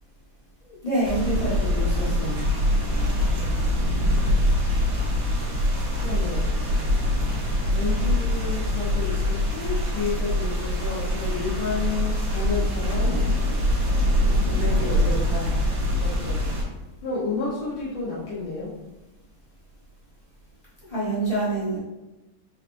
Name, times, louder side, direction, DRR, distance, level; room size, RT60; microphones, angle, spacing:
voice 1, 0.6-2.5 20.9-21.8, right 2 dB, 30° left, -8 dB, 0.7 m, -27 dB
sound 1, 1.0-16.6, left 1 dB, 50° right, 1.3 m, -24 dB
voice 2, 3.1-4.3 6.0-6.6 7.7-13.2 14.5-15.6 16.0-16.5 17.0-18.7, left 4 dB, 75° left, -8 dB, 1.8 m, -31 dB
4.6 x 3.1 x 3.0 m, 1.0 s
omnidirectional pair, 2.3 m